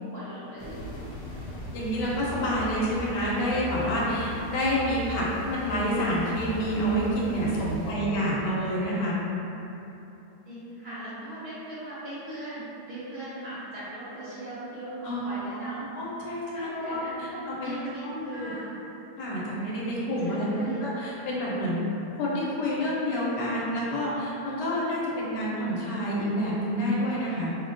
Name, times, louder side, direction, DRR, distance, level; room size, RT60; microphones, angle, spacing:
voice 1, 0.1-0.9 7.4-8.1 10.4-15.9 16.5-18.7 20.2-20.8, right 1 dB, 45° right, -13 dB, 0.9 m, -40 dB
sound 1, 0.6-7.9, left 2 dB, 60° left, 1.0 m, -38 dB
voice 2, 1.7-9.2 15.0-17.8 18.0-18.5 19.2-21.8 22.2-27.6, equal, 85° left, -6 dB, 1.3 m, -28 dB
3.7 x 2.1 x 2.5 m, 3.0 s
omnidirectional pair, 1.8 m